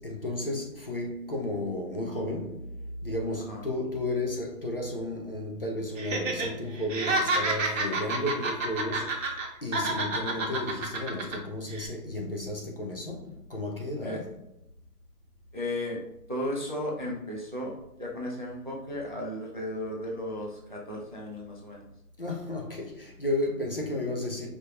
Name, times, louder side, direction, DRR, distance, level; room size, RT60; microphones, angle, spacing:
voice 1, 0.0-14.6 22.2-24.5, left 1 dB, 40° left, 0.6 m, -33 dB
Laughter, 6.0-6.5 6.8-9.5 9.7-11.4 11.7-11.9, right 2 dB, 55° right, 1.0 m, -29 dB
voice 2, 15.5-16.0 16.3-21.8, left 1 dB, 35° right, 0.4 m, -35 dB
4.9 x 2.9 x 2.3 m
hypercardioid pair, 165°, 46 cm